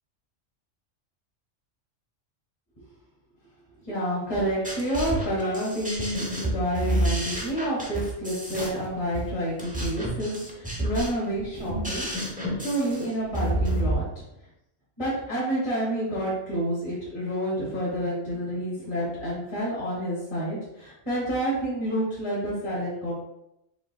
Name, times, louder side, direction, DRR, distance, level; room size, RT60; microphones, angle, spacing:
voice 1, 3.9-14.1 15.0-23.2, equal, 25° left, -8 dB, 1.6 m, -29 dB
sound 1, 4.4-13.9, right 1 dB, 10° right, 0.6 m, -30 dB
5.2 x 3.6 x 2.3 m, 0.84 s
omnidirectional pair, 1.3 m